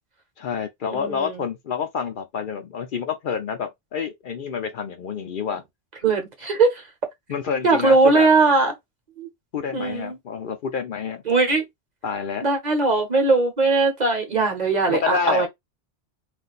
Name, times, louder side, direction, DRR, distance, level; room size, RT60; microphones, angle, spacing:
voice 1, 0.4-5.6 7.3-8.3 9.5-11.2 12.0-12.4 14.9-15.5, left 6 dB, 60° left, 0.7 m, -28 dB
voice 2, 0.9-1.4 6.0-6.8 7.6-8.7 9.2-9.3 9.7-10.2 11.3-11.6 12.4-15.5, right 3 dB, 45° right, 1.0 m, -20 dB
2.5 x 2.2 x 3.9 m
omnidirectional pair, 1.0 m